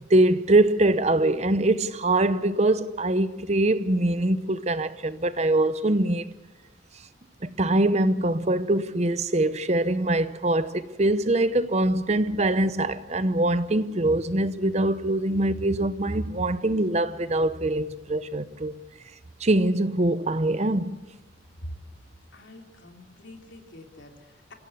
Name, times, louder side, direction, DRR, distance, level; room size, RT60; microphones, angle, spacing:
voice 1, 0.1-6.2 7.4-18.7 19.4-21.0, right 2 dB, 35° right, 0.8 m, -23 dB
voice 2, 22.3-24.5, equal, 70° left, 3.2 m, -44 dB
26.0 x 17.0 x 8.0 m
head